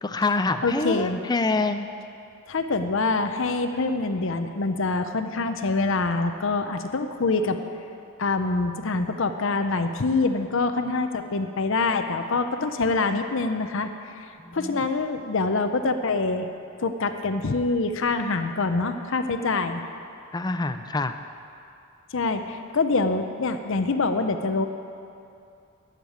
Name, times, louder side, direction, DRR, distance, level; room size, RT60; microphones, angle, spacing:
voice 1, 0.0-1.9 14.4-14.8 20.3-21.1, left 3 dB, 20° left, 8 dB, 0.4 m, -26 dB
voice 2, 0.6-1.2 2.5-7.6 8.2-13.9 14.5-16.5 16.8-19.8 22.1-24.7, left 3 dB, 60° left, 8 dB, 0.7 m, -25 dB
13.5 x 6.7 x 9.3 m, 2.5 s
head